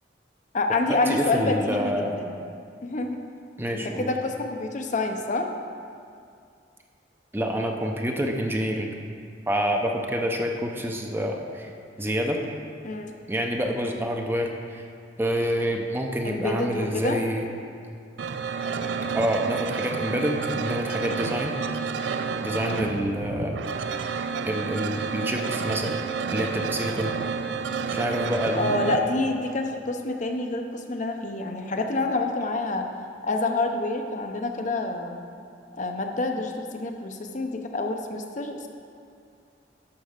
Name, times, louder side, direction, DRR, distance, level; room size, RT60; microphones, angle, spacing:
voice 1, 0.5-2.4 2.8-3.2 3.7-5.5 12.8-13.2 16.2-17.2 22.7-23.0 28.5-32.9 33.2-35.2 35.8-38.7, left 2 dB, 45° left, 4 dB, 0.7 m, -27 dB
voice 2, 1.1-2.1 3.6-4.1 7.3-8.9 9.5-11.7 12.0-12.4 13.3-14.8 15.2-17.5 19.1-21.6 22.4-23.5 24.5-26.0 26.3-27.1 27.9-29.1, equal, 10° right, 2 dB, 0.7 m, -27 dB
sound 1, 18.2-29.0, right 5 dB, 85° right, 0.4 m, -30 dB
11.5 x 4.5 x 6.6 m, 2.4 s
head